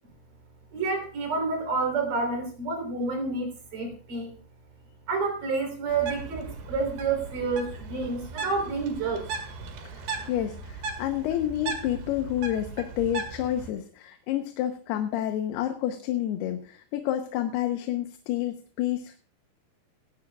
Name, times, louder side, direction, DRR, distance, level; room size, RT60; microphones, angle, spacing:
voice 1, 0.7-4.3 5.1-9.3, right 4 dB, 55° right, 4 dB, 5.1 m, -29 dB
Bird, 5.9-13.7, right 4 dB, 85° right, 4.0 m, -37 dB
voice 2, 9.9-19.2, left 12 dB, 85° left, 6 dB, 2.9 m, -29 dB
18.0 x 16.0 x 2.4 m, 0.39 s
omnidirectional pair, 4.6 m